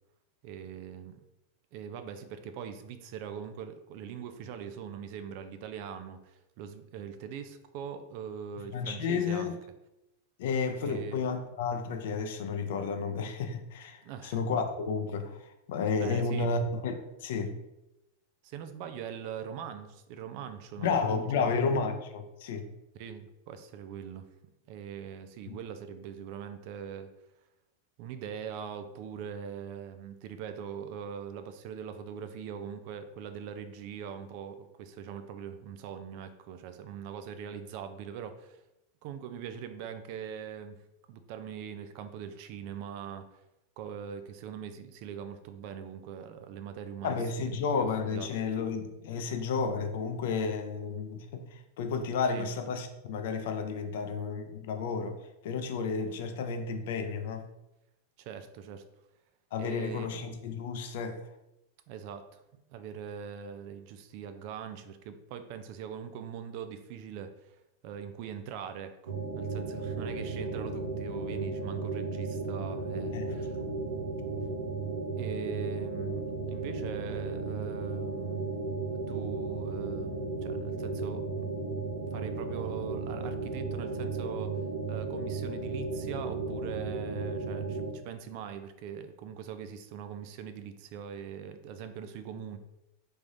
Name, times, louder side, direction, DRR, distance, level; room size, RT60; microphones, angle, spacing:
voice 1, 0.4-1.2 1.7-9.6 10.8-11.2 14.0-14.4 16.0-16.5 18.4-21.5 22.9-24.3 24.7-27.1 28.0-38.6 39.0-40.8 41.1-43.3 43.8-48.3 52.3-52.5 58.2-58.8 59.6-60.1 61.9-62.4 62.7-67.6 67.8-73.6 75.2-78.5 79.1-81.5 82.1-84.6 84.9-92.6, right 8 dB, 55° right, 9 dB, 0.4 m, -42 dB
voice 2, 8.7-9.6 10.4-17.6 20.8-22.7 25.5-25.6 47.0-57.5 59.5-61.2 73.1-73.6, left 5 dB, 65° left, 7 dB, 0.5 m, -32 dB
sound 1, 69.1-87.9, right 3 dB, 85° right, 0.8 m, -35 dB
3.5 x 3.2 x 2.6 m, 0.90 s
hypercardioid pair, 95°, 0 cm